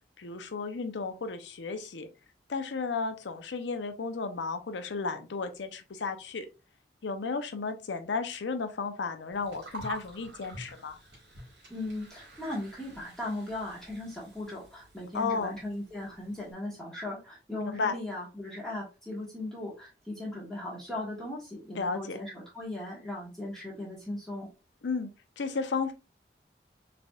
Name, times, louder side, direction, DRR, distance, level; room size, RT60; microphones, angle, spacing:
voice 1, 0.2-2.1 2.5-6.5 7.0-11.0 15.1-15.5 17.5-17.9 21.7-22.2 24.8-25.1 25.4-25.9, left 4 dB, 85° left, 0.6 m, -33 dB
Gurgling, 9.3-16.5, right 1 dB, 85° right, 1.7 m, -48 dB
voice 2, 11.7-24.5, left 1 dB, 5° left, 1.3 m, -38 dB
3.8 x 3.4 x 2.3 m
head